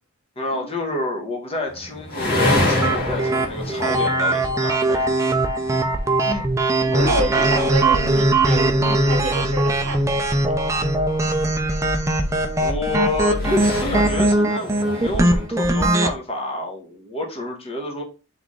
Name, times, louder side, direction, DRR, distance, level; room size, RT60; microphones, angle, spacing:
voice 1, 0.4-5.4 6.9-7.7 12.6-18.0, left 2 dB, 30° left, 1.1 m, -29 dB
sound 1, 1.7-15.5, left 2 dB, 50° left, 1.8 m, -30 dB
sound 2, 2.3-16.1, right 2 dB, 15° right, 0.3 m, -21 dB
voice 2, 6.7-10.5, right 2 dB, 80° right, 1.0 m, -28 dB
sound 3, 7.0-14.3, left 1 dB, 65° left, 0.4 m, -32 dB
4.1 x 3.5 x 3.1 m
head